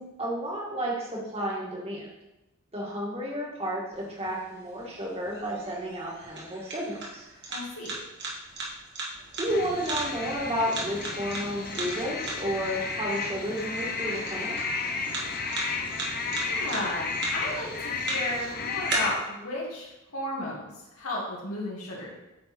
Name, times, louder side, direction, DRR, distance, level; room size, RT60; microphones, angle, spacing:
voice 1, 0.0-2.1 2.7-7.3 9.4-14.6, equal, 30° right, -3 dB, 1.8 m, -32 dB
sound 1, 3.9-18.9, right 3 dB, 55° right, 1.8 m, -39 dB
voice 2, 7.5-7.9 16.3-22.1, left 1 dB, 85° left, -4 dB, 2.0 m, -34 dB
sound 2, 9.5-19.1, left 4 dB, 45° left, 0.8 m, -33 dB
8.7 x 3.9 x 4.3 m, 0.98 s
head